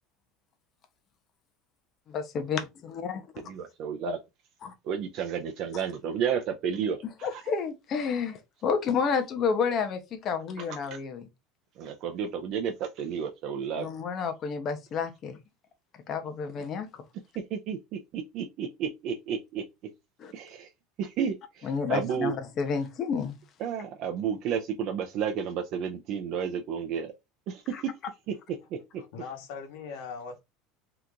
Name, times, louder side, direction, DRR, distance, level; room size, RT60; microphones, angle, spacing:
voice 1, 2.1-3.5 4.6-4.7 7.0-11.3 13.8-15.4 16.1-16.9 20.2-20.3 21.6-23.4 27.7-27.8, left 6 dB, 35° left, 0.6 m, -30 dB
voice 2, 3.5-4.2 4.9-7.0 11.8-13.8 17.7-17.8 18.4-19.6 20.3-20.7 21.0-22.3 23.6-27.1 27.5-27.6, right 7 dB, 50° right, 0.5 m, -31 dB
voice 3, 28.6-30.4, left 5 dB, 70° left, 1.1 m, -41 dB
2.8 x 2.4 x 3.6 m
supercardioid pair, 150°, 0 cm